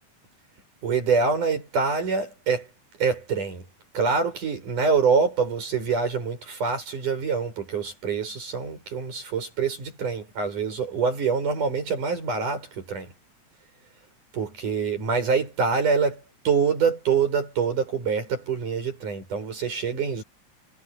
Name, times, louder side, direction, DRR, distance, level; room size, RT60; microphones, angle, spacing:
voice 1, 0.8-2.7 3.0-3.7 3.9-13.1 14.3-20.2, right 5 dB, 85° right, 8.7 m, -25 dB
omnidirectional pair, 3.5 m